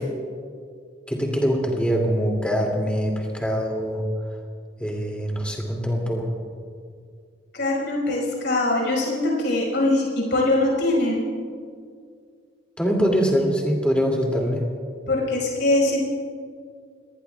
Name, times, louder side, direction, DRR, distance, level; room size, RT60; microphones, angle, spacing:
voice 1, 1.1-4.0 4.8-6.3 12.8-14.7, equal, 5° left, -1 dB, 2.5 m, -23 dB
voice 2, 7.5-11.3 15.1-16.0, left 2 dB, 60° left, -2 dB, 5.2 m, -22 dB
29.5 x 19.5 x 2.4 m, 2.1 s
head